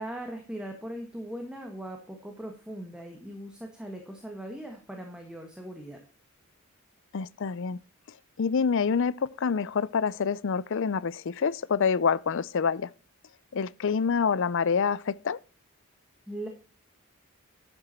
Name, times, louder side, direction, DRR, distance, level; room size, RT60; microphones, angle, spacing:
voice 1, 0.0-6.0 16.3-16.5, right 1 dB, 5° right, 1.6 m, -39 dB
voice 2, 7.1-7.8 8.4-12.9 13.5-15.4, left 6 dB, 60° left, 0.5 m, -27 dB
11.5 x 8.0 x 4.3 m
head